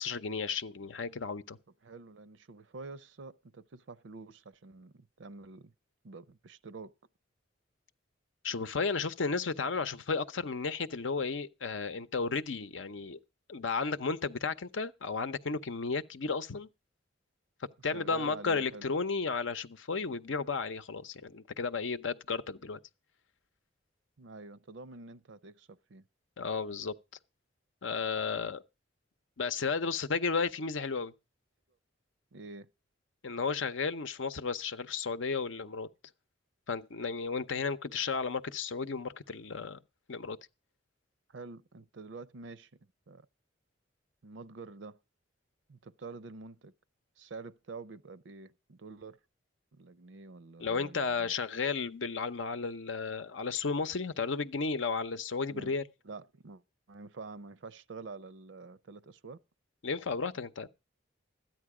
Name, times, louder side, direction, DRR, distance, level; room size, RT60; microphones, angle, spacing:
voice 1, 0.0-1.6 8.4-13.2 13.5-16.7 17.8-22.8 26.4-26.9 27.8-28.6 29.4-31.1 33.2-35.9 36.7-39.8 40.1-40.4 50.6-55.8 59.8-60.7, left 4 dB, 80° left, 0.8 m, -33 dB
voice 2, 1.8-5.7 6.0-7.0 17.8-18.9 24.2-26.0 32.3-32.7 41.3-42.7 43.1-43.3 44.2-45.0 45.7-46.7 47.2-49.2 49.7-51.3 55.5-55.7 56.0-56.6 56.9-59.4, right 4 dB, 65° right, 0.6 m, -47 dB
13.5 x 9.4 x 4.9 m
head